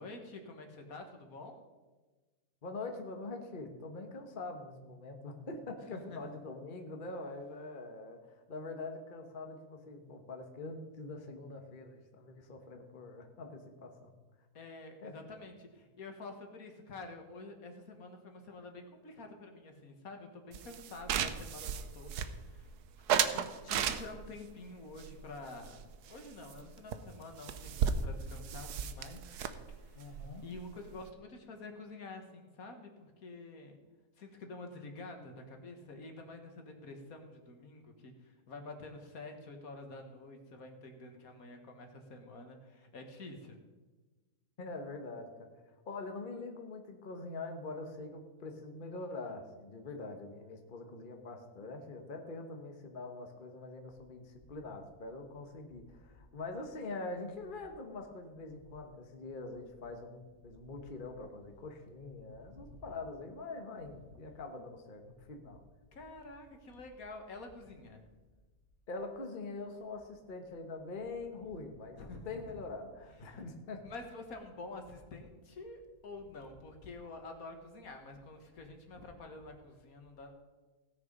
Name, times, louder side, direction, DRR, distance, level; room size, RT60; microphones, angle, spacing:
voice 1, 0.0-1.7 5.9-6.2 14.5-22.7 23.1-29.3 29.7-33.8 34.2-43.6 62.3-62.9 63.8-64.2 65.9-68.0 72.0-72.6 73.2-73.5 73.8-80.3, left 2 dB, 65° left, 5 dB, 1.8 m, -48 dB
voice 2, 2.6-8.2 8.5-14.1 15.0-15.1 29.9-30.4 44.6-45.5 45.9-65.6 68.9-72.0 72.2-73.8, left 3 dB, 35° left, 4 dB, 1.3 m, -44 dB
sound 1, 20.5-22.6 23.1-24.4 25.0-26.2 26.5-26.6 26.9-27.0 27.2-31.1, right 8 dB, 85° right, 1.3 m, -35 dB
17.5 x 6.7 x 5.3 m, 1.2 s
omnidirectional pair, 1.6 m